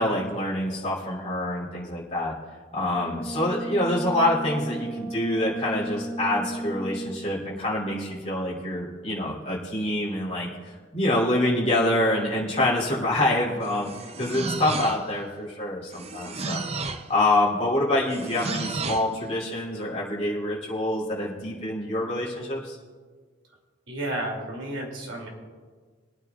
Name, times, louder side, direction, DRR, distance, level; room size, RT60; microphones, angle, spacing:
voice 1, 0.0-2.3 2.7-13.9 14.2-16.6 17.1-22.8, left 1 dB, 30° left, -6 dB, 2.9 m, -26 dB
Brass instrument, 2.9-7.2, right 1 dB, 15° right, 4.0 m, -34 dB
sound 1, 13.6-15.2 15.9-17.1 18.1-19.1, right 3 dB, 30° right, 0.5 m, -33 dB
voice 2, 23.9-25.3, right 1 dB, 75° right, 0 dB, 2.7 m, -32 dB
24.0 x 9.4 x 2.4 m, 1.5 s
head